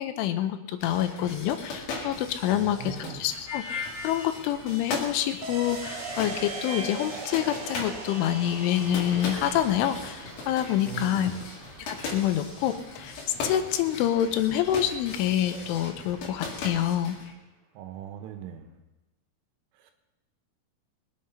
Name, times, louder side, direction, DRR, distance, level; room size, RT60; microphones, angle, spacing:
voice 1, 0.0-11.3 11.9-13.2 13.4-17.2, left 11 dB, 85° left, 9 dB, 3.3 m, -27 dB
sound 1, 0.8-17.3, left 3 dB, 55° left, 3.7 m, -39 dB
voice 2, 2.5-3.2 10.9-11.5 17.8-18.7 19.8-19.9, right 9 dB, 90° right, 6 dB, 3.7 m, -39 dB
Harmonica, 3.5-9.5, left 2 dB, 20° left, 1.3 m, -41 dB
sound 2, 5.4-14.8 15.1-15.2, right 4 dB, 70° right, 1.9 m, -42 dB
21.5 x 8.5 x 5.5 m, 1.0 s
omnidirectional pair, 5.6 m